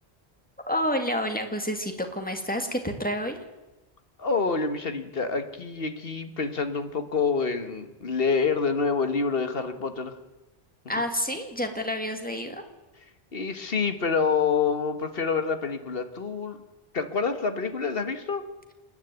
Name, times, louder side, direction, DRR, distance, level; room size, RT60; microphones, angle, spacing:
voice 1, 0.7-3.3 10.9-12.6, equal, 10° left, 5 dB, 2.3 m, -29 dB
voice 2, 4.2-10.2 10.9-11.0 13.3-16.6 16.9-18.4, left 5 dB, 65° left, 8 dB, 1.7 m, -27 dB
28.0 x 10.5 x 9.3 m, 1.0 s
omnidirectional pair, 1.1 m